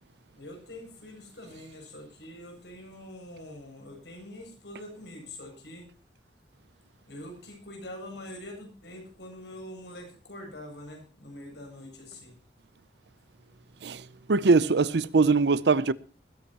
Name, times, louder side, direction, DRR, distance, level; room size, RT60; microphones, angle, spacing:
voice 1, 0.4-5.9 7.0-12.4, left 1 dB, 70° left, 7.4 m, -44 dB
voice 2, 14.3-15.9, right 4 dB, 70° right, 0.6 m, -22 dB
20.0 x 15.5 x 3.0 m
head